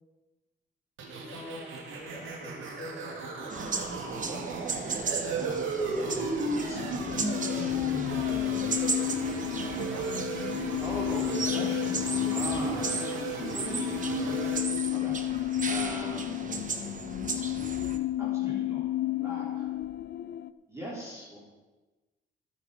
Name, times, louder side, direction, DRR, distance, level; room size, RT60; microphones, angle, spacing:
sound 1, 1.0-14.6, right 4 dB, 80° right, 2.3 m, -35 dB
voice 1, 1.1-3.3 4.1-4.6 9.7-10.8 12.5-12.8, left 2 dB, 20° left, -4 dB, 5.1 m, -46 dB
sound 2, 3.5-18.0, right 4 dB, 40° right, 1.2 m, -36 dB
voice 2, 4.1-4.5 5.4-8.0 8.4-8.8 10.8-14.5 14.9-16.4 17.3-17.6 18.2-18.8 19.2-19.7 20.7-21.4, equal, 15° right, -5 dB, 3.9 m, -41 dB
sound 3, 6.7-20.5, left 14 dB, 55° left, 0.5 m, -32 dB
13.0 x 9.4 x 5.1 m, 1.2 s
cardioid pair, 90°, 20 cm